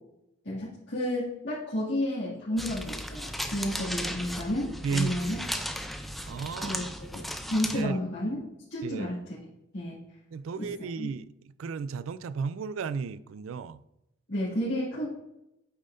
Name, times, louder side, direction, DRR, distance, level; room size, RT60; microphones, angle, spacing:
voice 1, 0.4-5.4 6.6-7.2 7.5-8.4 8.7-9.4 9.7-10.0 10.6-10.7 11.0-11.1 14.3-15.1, left 1 dB, 60° left, 2.2 m, -31 dB
sound 1, 2.6-7.8, equal, ahead, 0.5 m, -36 dB
voice 2, 4.8-5.3 6.3-6.8 7.7-8.0 8.8-9.1 10.3-11.3 11.6-13.8, right 5 dB, 90° right, 0.3 m, -33 dB
8.6 x 5.5 x 2.6 m
head